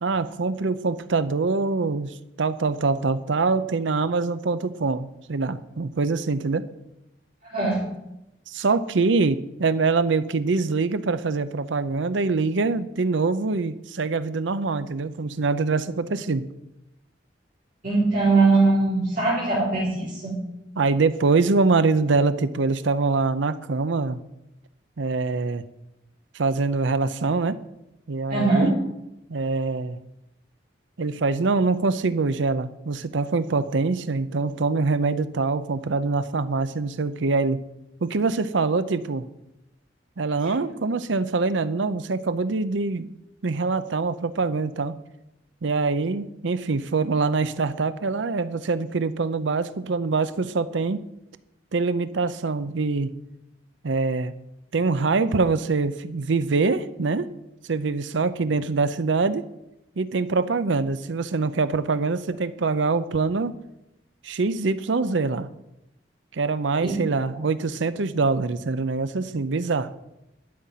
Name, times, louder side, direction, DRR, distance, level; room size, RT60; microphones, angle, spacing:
voice 1, 0.0-6.7 8.5-16.5 20.8-24.2 25.0-25.6 26.3-27.6 28.1-28.7 29.3-30.0 31.0-37.6 38.0-39.3 40.2-43.1 43.4-45.0 45.6-51.0 51.7-53.1 53.8-54.3 54.7-57.3 57.7-59.4 60.0-63.5 64.2-65.5 66.3-69.9, right 3 dB, 80° right, 14 dB, 0.6 m, -24 dB
voice 2, 7.4-7.8 17.8-20.4 28.3-28.7 66.8-67.0, right 3 dB, 45° right, -6 dB, 2.8 m, -21 dB
12.0 x 5.8 x 9.0 m, 0.89 s
head